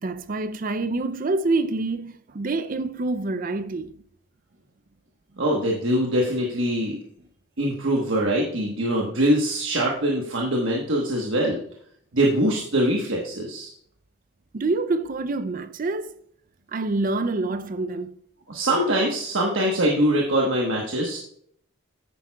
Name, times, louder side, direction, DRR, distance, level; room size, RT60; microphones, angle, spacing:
voice 1, 0.0-3.9 14.5-16.2 16.7-18.2, right 3 dB, 40° right, 0.4 m, -26 dB
voice 2, 5.4-7.0 7.6-11.6 12.1-13.7 18.5-21.2, right 1 dB, 70° right, 1.2 m, -23 dB
10.0 x 9.1 x 2.3 m
head